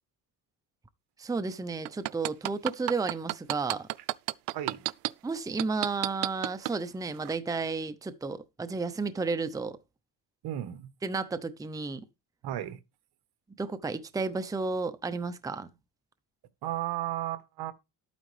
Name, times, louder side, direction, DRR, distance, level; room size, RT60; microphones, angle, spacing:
voice 1, 1.2-3.9 5.2-9.8 11.0-12.0 13.6-15.7, right 4 dB, 10° right, 0.7 m, -32 dB
sound 1, 1.9-5.1 5.6-6.7 7.2-7.3, right 21 dB, 85° right, 0.6 m, -30 dB
voice 2, 4.5-4.9 10.4-10.9 12.4-12.8 16.6-17.7, right 13 dB, 65° right, 1.4 m, -34 dB
12.0 x 9.2 x 3.3 m
cardioid pair, 125°, 42 cm